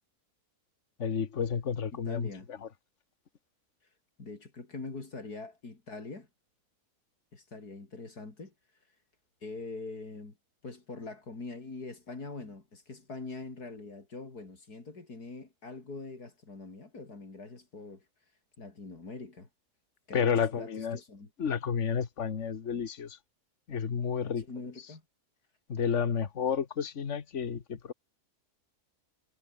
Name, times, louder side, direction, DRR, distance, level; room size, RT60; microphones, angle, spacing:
voice 1, 1.0-2.3 2.6-2.7 20.1-21.0 21.4-23.2 23.7-24.5 24.8-24.9 25.7-27.9, left 7 dB, 50° left, 1.8 m, -31 dB
voice 2, 2.1-2.5 4.2-6.3 7.3-8.5 9.4-10.4 10.6-18.0 18.6-19.5 20.1-21.3 24.4-25.0, left 3 dB, 85° left, 4.6 m, -43 dB
omnidirectional pair, 1.6 m